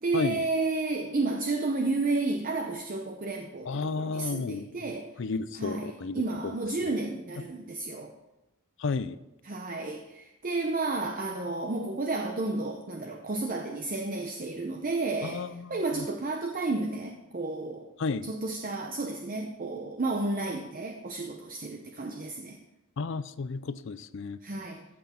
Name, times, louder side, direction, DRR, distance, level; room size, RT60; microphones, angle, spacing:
voice 1, 0.0-5.1 5.5-8.1 9.4-17.9 18.2-22.6 24.4-24.9, right 3 dB, 40° right, 4 dB, 0.7 m, -32 dB
voice 2, 3.7-4.7 5.2-6.2 8.8-9.2 15.2-16.1 18.0-18.3 23.0-24.4, left 4 dB, 60° left, 14 dB, 0.5 m, -32 dB
15.0 x 6.0 x 4.3 m, 0.98 s
head